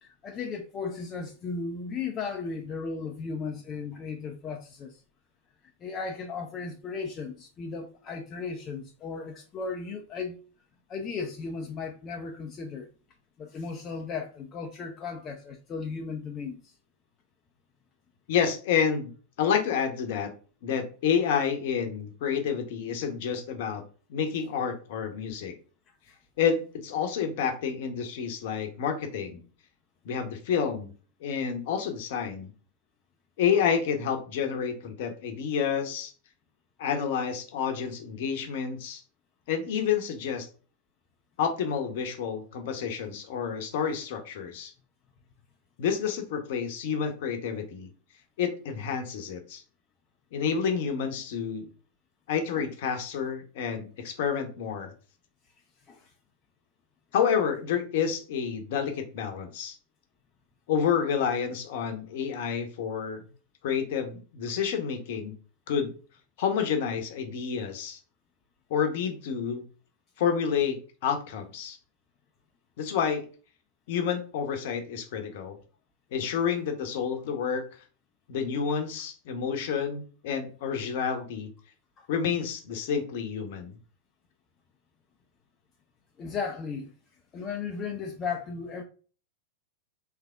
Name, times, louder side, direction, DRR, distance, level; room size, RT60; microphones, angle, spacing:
voice 1, 0.0-5.0 5.8-10.4 10.9-12.9 13.4-16.7 26.1-26.2 52.6-52.7 55.9-56.1 82.0-82.1 86.2-86.9 87.3-88.8, left 5 dB, 25° left, 0.4 m, -36 dB
voice 2, 18.3-19.1 19.4-20.3 20.6-23.8 24.1-25.5 26.4-29.4 30.0-30.9 31.2-32.5 33.4-36.1 36.8-39.0 39.5-40.5 41.4-44.7 45.8-47.9 48.4-49.6 50.3-51.7 52.3-54.9 57.1-59.8 60.7-63.2 63.6-65.3 65.7-65.9 66.4-68.0 68.7-69.6 70.2-70.8 71.0-71.8 72.8-73.2 73.9-75.6 76.1-77.6 78.3-81.5 82.1-83.8, left 7 dB, 50° left, 0.7 m, -29 dB
3.4 x 3.3 x 2.3 m
figure-of-eight pair, 90°, 0 cm